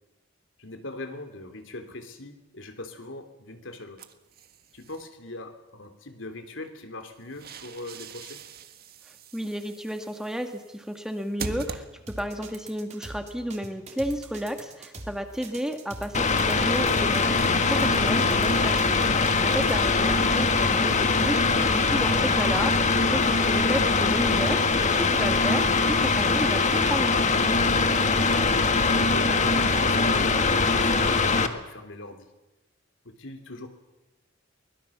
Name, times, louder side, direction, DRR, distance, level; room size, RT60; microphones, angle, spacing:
voice 1, 0.6-4.1 4.7-8.4 29.0-32.3 33.0-33.7, left 2 dB, 75° left, 7 dB, 3.2 m, -40 dB
sound 1, 4.0-5.1 7.0-12.4, right 4 dB, 50° right, 1.6 m, -42 dB
voice 2, 9.3-17.3 17.6-20.5 20.8-27.6, equal, 5° right, 6 dB, 1.7 m, -32 dB
sound 2, 12.1-19.7, right 2 dB, 35° right, 3.2 m, -42 dB
Mechanical fan, 16.1-31.5, left 4 dB, 40° left, 1.6 m, -22 dB
24.0 x 20.5 x 7.3 m, 1.0 s
head